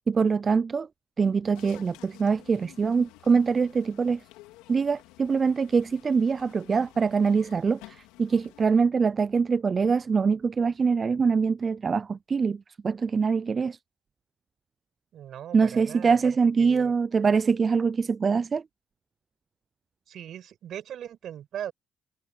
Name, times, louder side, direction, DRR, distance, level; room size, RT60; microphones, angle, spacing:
voice 1, 0.1-0.9 1.2-4.2 4.7-13.8 15.5-18.6, right 5 dB, 40° right, 0.4 m, -24 dB
sound 1, 1.5-8.7, left 18 dB, 90° left, 3.6 m, -53 dB
voice 2, 15.1-16.3 16.6-16.9 20.1-21.7, right 10 dB, 65° right, 5.5 m, -39 dB
supercardioid pair, 65°, 0 cm